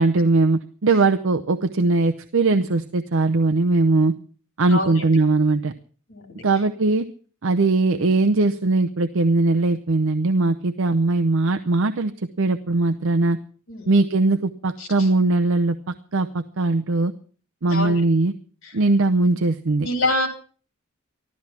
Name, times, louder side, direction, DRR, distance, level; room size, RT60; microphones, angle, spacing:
voice 1, 0.0-4.2 4.6-5.7 6.4-7.0 7.4-13.4 13.9-17.1 17.6-18.3 18.7-19.9, right 3 dB, 65° right, 7 dB, 0.7 m, -20 dB
voice 2, 4.7-5.0 6.1-6.4 13.7-13.9 14.8-14.9 17.7-17.9 19.8-20.3, left 1 dB, 65° left, 4 dB, 3.8 m, -25 dB
14.5 x 13.0 x 5.8 m, 0.42 s
head